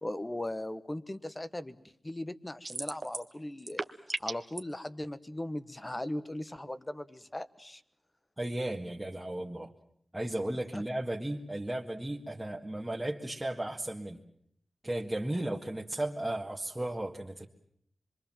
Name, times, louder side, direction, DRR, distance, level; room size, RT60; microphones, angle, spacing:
voice 1, 0.0-1.8 2.0-3.8 4.2-7.8 10.7-10.8 15.3-15.4, left 1 dB, 20° left, 13 dB, 1.3 m, -38 dB
sound 1, 2.6-3.3 3.6-4.6, right 2 dB, 35° right, 1.4 m, -36 dB
voice 2, 8.4-9.7 10.1-14.2 14.8-17.5, right 1 dB, 15° right, -2 dB, 1.8 m, -35 dB
26.0 x 23.5 x 7.5 m, 0.68 s
wide cardioid pair, 80°, 0 cm